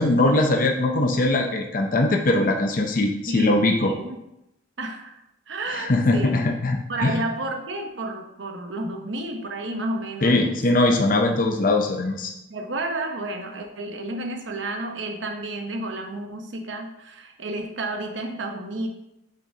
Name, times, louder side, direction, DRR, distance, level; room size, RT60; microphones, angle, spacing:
voice 1, 0.0-3.9 5.7-7.2 10.2-12.3, left 2 dB, 45° left, 3 dB, 0.6 m, -21 dB
voice 2, 3.3-4.2 4.8-5.2 5.5-6.5 6.9-10.5 12.5-18.9, right 2 dB, 85° right, 4 dB, 0.9 m, -31 dB
6.4 x 6.3 x 2.8 m, 0.85 s
head